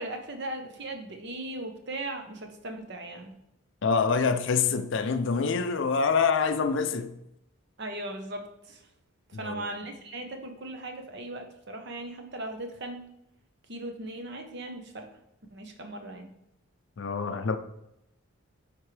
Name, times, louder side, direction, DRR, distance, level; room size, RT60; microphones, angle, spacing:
voice 1, 0.0-3.3 7.8-8.8 9.3-13.0 13.7-15.1 15.5-16.3, right 1 dB, 50° right, 0.9 m, -38 dB
voice 2, 3.8-7.2 9.4-9.7 17.0-17.6, left 5 dB, 60° left, 0.4 m, -26 dB
10.5 x 3.7 x 3.3 m
head